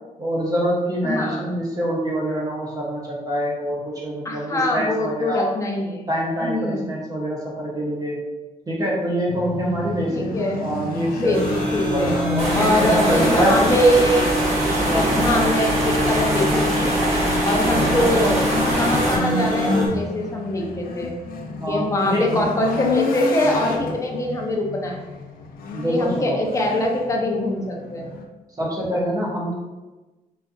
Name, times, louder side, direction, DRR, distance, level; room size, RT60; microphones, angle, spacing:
voice 1, 0.2-5.5 6.1-8.2 8.7-11.4 11.9-13.8 14.6-15.3 21.6-22.4 25.7-26.4 28.6-29.5, equal, 25° right, -4 dB, 0.6 m, -25 dB
voice 2, 1.0-1.4 4.2-6.1 6.4-6.9 10.1-10.7 11.2-12.2 12.5-14.4 14.9-16.9 17.4-18.5 18.8-21.1 21.7-25.0 25.9-28.1, left 1 dB, 20° left, 0 dB, 0.5 m, -23 dB
sound 1, 9.3-28.2, left 3 dB, 85° left, 0.4 m, -30 dB
sound 2, 11.3-19.9, right 1 dB, 70° right, 0.8 m, -26 dB
sound 3, 12.4-19.2, right 1 dB, 45° right, 1.0 m, -23 dB
3.9 x 2.4 x 2.4 m, 1.1 s
wide cardioid pair, 165°, 15 cm